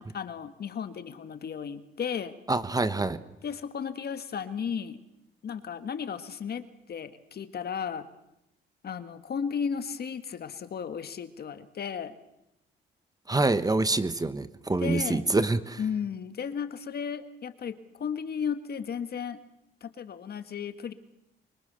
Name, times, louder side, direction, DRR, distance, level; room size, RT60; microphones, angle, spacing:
voice 1, 0.0-2.4 3.4-5.0 5.4-8.1 8.8-12.2 14.8-15.2 15.8-19.4 19.8-20.9, left 7 dB, 50° left, 10 dB, 1.8 m, -34 dB
voice 2, 2.5-3.2 13.3-15.8, right 2 dB, 20° right, 13 dB, 1.2 m, -26 dB
25.0 x 24.0 x 7.0 m, 0.86 s
cardioid pair, 90°, 20 cm